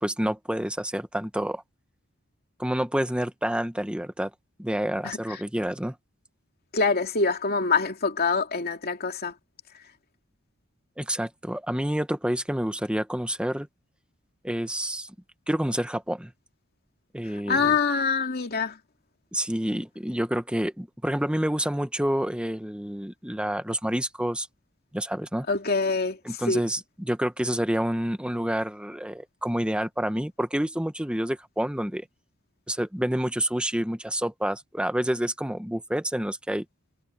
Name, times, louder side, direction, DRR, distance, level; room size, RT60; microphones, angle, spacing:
voice 1, 0.0-1.6 2.6-4.3 4.6-5.9 11.0-13.7 14.4-15.1 15.5-16.3 17.1-17.8 19.3-24.5 24.9-25.5 26.2-32.1 32.7-36.6, equal, 5° right, 1.1 m, -28 dB
voice 2, 6.7-9.3 17.5-18.8 25.5-26.2 26.5-26.6, left 4 dB, 50° left, 2.7 m, -25 dB
head